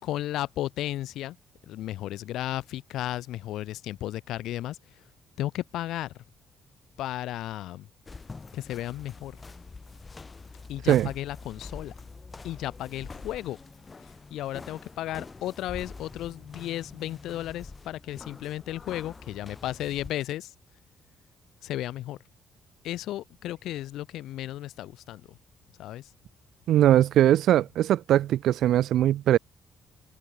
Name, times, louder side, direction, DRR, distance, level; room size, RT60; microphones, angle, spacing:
voice 1, 0.0-1.4 1.7-5.0 5.4-6.1 7.0-7.9 8.5-9.4 10.7-11.9 12.4-13.6 14.0-20.5 21.6-22.2 22.8-25.4 25.8-26.1, left 14 dB, 85° left, 3.7 m, -34 dB
sound 1, 8.1-20.1, left 4 dB, 30° left, 7.5 m, -45 dB
voice 2, 26.7-29.4, right 12 dB, 75° right, 3.0 m, -21 dB
cardioid pair, 90°, 0 cm